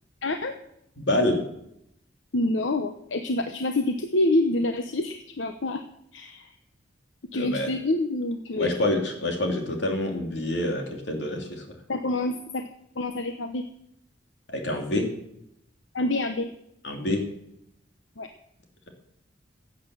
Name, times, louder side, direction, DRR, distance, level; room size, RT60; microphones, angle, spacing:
voice 1, 0.2-0.6 2.3-5.8 6.1-6.5 7.3-8.9 11.9-12.7 13.0-13.6 15.9-16.5 18.2-18.3, left 2 dB, 80° left, 7 dB, 1.0 m, -27 dB
voice 2, 1.0-1.4 7.3-7.7 8.6-11.6 14.5-15.1 16.8-17.2, left 1 dB, 65° left, 3 dB, 3.0 m, -27 dB
16.0 x 8.5 x 7.1 m, 0.78 s
head